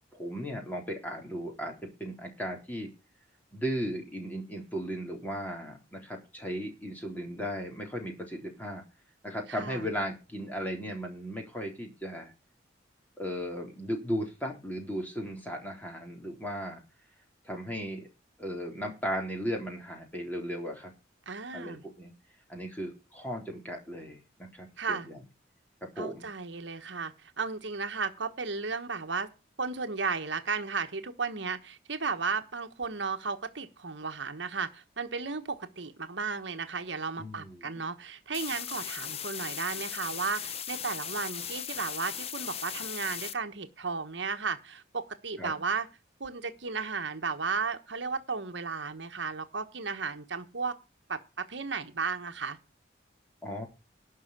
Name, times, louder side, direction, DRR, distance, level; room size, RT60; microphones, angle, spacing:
voice 1, 0.1-2.9 3.5-8.8 9.2-12.3 13.2-16.8 17.4-18.1 18.4-20.9 21.5-22.1 22.5-25.2 25.8-26.3 37.2-37.9 45.4-45.5 53.4-53.7, equal, 10° left, 1 dB, 3.8 m, -36 dB
voice 2, 9.5-9.9 21.3-21.8 24.8-25.1 26.0-29.3 29.6-45.9 46.2-50.8 51.1-52.6, right 4 dB, 70° right, 7 dB, 1.3 m, -34 dB
sound 1, 38.3-43.3, left 8 dB, 30° left, 0.7 m, -38 dB
12.0 x 5.6 x 8.5 m, 0.30 s
head